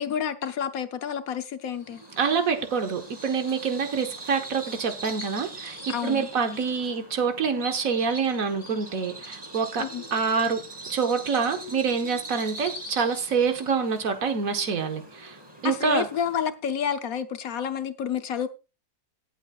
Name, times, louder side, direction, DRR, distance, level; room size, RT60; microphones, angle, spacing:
voice 1, 0.0-2.0 5.9-6.3 9.8-10.0 15.6-18.5, left 8 dB, 60° left, 1.2 m, -29 dB
Bird vocalization bird call bird song, 1.7-16.5, right 2 dB, 15° right, 2.4 m, -42 dB
voice 2, 2.2-10.6 10.9-15.4 15.6-16.1, right 5 dB, 55° right, 1.6 m, -26 dB
18.5 x 8.0 x 2.4 m
omnidirectional pair, 1.8 m